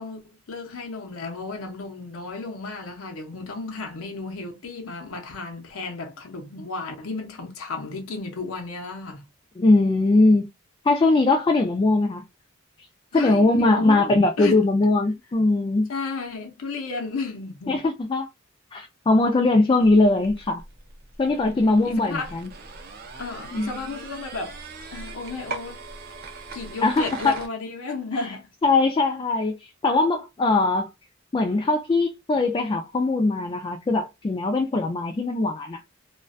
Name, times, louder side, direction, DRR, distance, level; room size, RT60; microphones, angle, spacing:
voice 1, 0.0-9.2 13.1-14.6 15.9-17.8 21.3-22.3 23.2-24.6 24.9-25.8 26.5-28.5, left 3 dB, 85° left, 0.6 m, -33 dB
voice 2, 9.6-10.5 10.8-12.2 13.1-15.9 17.7-18.3 18.7-20.6 21.2-22.5 23.5-23.7 26.8-27.4 28.1-28.3 28.6-30.9 31.3-35.8, left 2 dB, 25° left, 0.3 m, -21 dB
sound 1, 19.8-27.5, right 3 dB, 45° right, 0.6 m, -40 dB
2.4 x 2.2 x 2.4 m
head